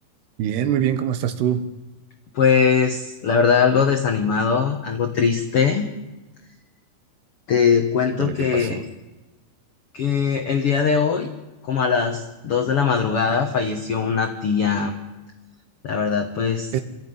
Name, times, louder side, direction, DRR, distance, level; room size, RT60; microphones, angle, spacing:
voice 1, 0.4-1.7 8.2-8.8 16.7-16.8, right 9 dB, 85° right, 10 dB, 3.3 m, -24 dB
voice 2, 2.3-5.9 7.5-8.8 9.9-11.3 11.6-14.9 15.8-16.7, left 6 dB, 75° left, 5 dB, 1.3 m, -21 dB
25.0 x 14.0 x 9.6 m, 1.1 s
omnidirectional pair, 4.6 m